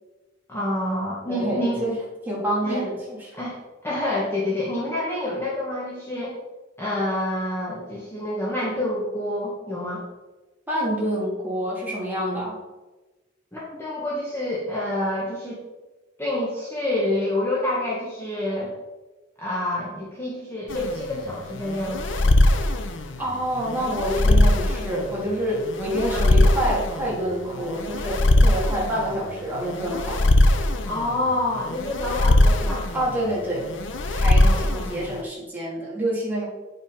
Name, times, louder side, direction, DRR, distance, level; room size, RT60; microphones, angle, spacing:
voice 1, 0.5-1.9 2.6-2.9 3.3-3.6 3.8-6.4 6.8-10.0 13.5-15.6 16.2-18.7 19.4-22.3 26.1-26.3 30.8-32.8 34.4-34.8, left 1 dB, 15° left, -7 dB, 1.7 m, -27 dB
voice 2, 1.3-2.0 2.3-3.2 10.7-12.6 23.2-30.3 32.9-33.7 34.1-36.4, equal, 10° right, -6 dB, 3.2 m, -27 dB
sound 1, 20.7-35.2, left 1 dB, 80° left, 0.9 m, -21 dB
9.4 x 5.9 x 5.3 m, 1.2 s
head